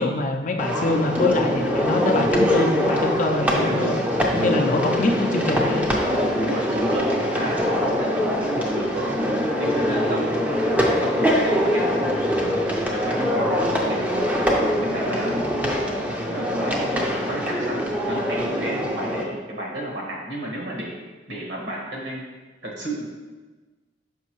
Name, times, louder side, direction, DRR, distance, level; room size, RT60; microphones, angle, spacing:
voice 1, 0.0-4.0 4.3-5.9, left 2 dB, 40° left, 4 dB, 0.4 m, -24 dB
sound 1, 0.6-19.2, equal, 10° right, 0.5 m, -23 dB
voice 2, 6.4-10.3 11.0-12.1 12.9-14.2 14.8-15.4 16.2-17.8 18.1-21.0 21.3-22.2 22.6-23.1, right 1 dB, 65° right, -2 dB, 1.4 m, -32 dB
6.2 x 5.3 x 3.0 m, 1.3 s
head